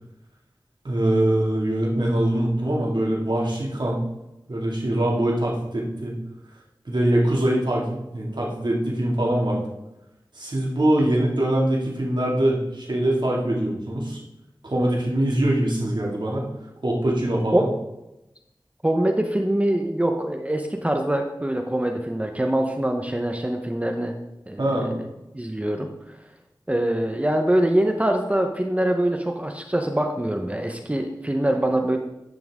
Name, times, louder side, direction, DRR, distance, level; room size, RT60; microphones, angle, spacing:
voice 1, 0.8-4.0 4.5-6.1 6.9-9.6 10.3-14.2 14.6-16.5 16.8-17.7 24.6-24.9, right 1 dB, 65° right, -3 dB, 2.3 m, -23 dB
voice 2, 18.8-24.1 24.5-24.9 25.3-25.9 26.7-32.0, right 1 dB, 15° right, 3 dB, 0.9 m, -24 dB
11.0 x 6.0 x 3.6 m, 0.92 s
wide cardioid pair, 40°, 8 cm